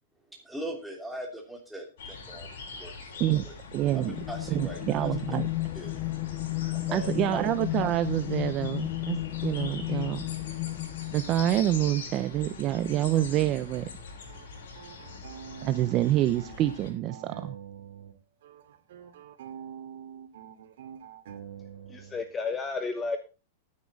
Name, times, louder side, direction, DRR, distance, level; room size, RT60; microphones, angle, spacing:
voice 1, 0.4-3.5 3.9-5.1 5.7-5.9 6.7-7.4, right 1 dB, 5° right, 1 dB, 2.8 m, -40 dB
sound 1, 2.0-16.9, left 4 dB, 70° left, 5.7 m, -43 dB
voice 2, 3.7-4.1 4.5-5.5 6.9-10.2 11.1-13.9 15.6-17.6, right 12 dB, 35° right, 12 dB, 0.7 m, -27 dB
sound 2, 3.8-11.5, left 18 dB, 40° left, 0.7 m, -33 dB
sound 3, 14.3-18.2 18.4-22.2, right 8 dB, 70° right, 2.4 m, -45 dB
voice 3, 21.9-23.2, left 4 dB, 15° left, 8 dB, 1.0 m, -32 dB
11.5 x 9.7 x 4.0 m, 0.30 s
supercardioid pair, 150°, 0 cm